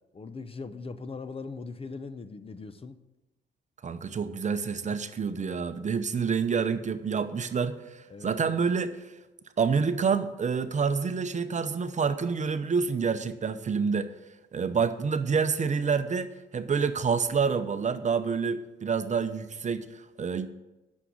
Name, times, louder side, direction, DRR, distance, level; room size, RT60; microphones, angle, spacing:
voice 1, 0.1-3.0 8.1-8.3, left 4 dB, 30° left, 12 dB, 0.7 m, -40 dB
voice 2, 3.8-9.1 9.6-14.1 14.5-20.5, right 5 dB, 35° right, 10 dB, 0.8 m, -28 dB
9.9 x 6.4 x 7.1 m, 1.0 s
cardioid pair, 90°, 20 cm